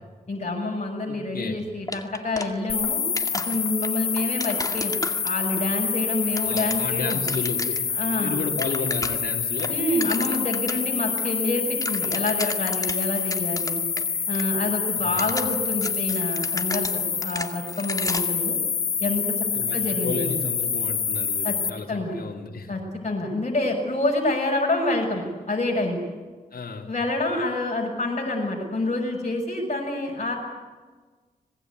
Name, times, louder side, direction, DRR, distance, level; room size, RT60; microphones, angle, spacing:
voice 1, 0.3-3.0 3.3-4.9 5.2-7.2 7.9-8.4 9.7-13.8 14.3-18.6 19.0-19.4 19.7-20.3 21.4-21.5 21.9-22.1 22.7-26.0 26.9-30.3, left 2 dB, 45° left, -1 dB, 6.6 m, -27 dB
voice 2, 1.1-1.6 6.4-7.9 8.2-9.8 14.9-15.4 19.5-22.7 26.5-26.9, left 4 dB, 65° left, 0 dB, 3.3 m, -33 dB
sound 1, 1.9-2.9 3.2-5.6 6.1-7.9 8.2-8.3 8.5-9.3 9.6-10.8 11.2-11.3 11.6-14.1 14.3-14.4 15.0-18.4, left 2 dB, 20° left, 2.2 m, -34 dB
sound 2, 2.7-21.7, left 6 dB, 80° left, 2.5 m, -27 dB
25.0 x 20.5 x 9.7 m, 1.4 s
cardioid pair, 50°, 16 cm